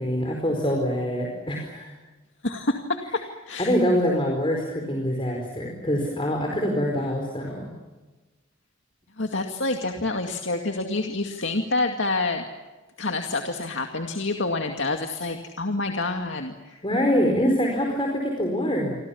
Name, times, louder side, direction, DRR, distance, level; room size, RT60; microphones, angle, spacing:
voice 1, 0.0-1.9 3.6-7.7 16.8-19.0, equal, 25° left, 1 dB, 4.7 m, -24 dB
voice 2, 2.4-3.7 9.2-12.4 13.0-16.8, left 2 dB, 65° left, 4 dB, 2.3 m, -27 dB
29.5 x 25.0 x 7.2 m, 1.2 s
head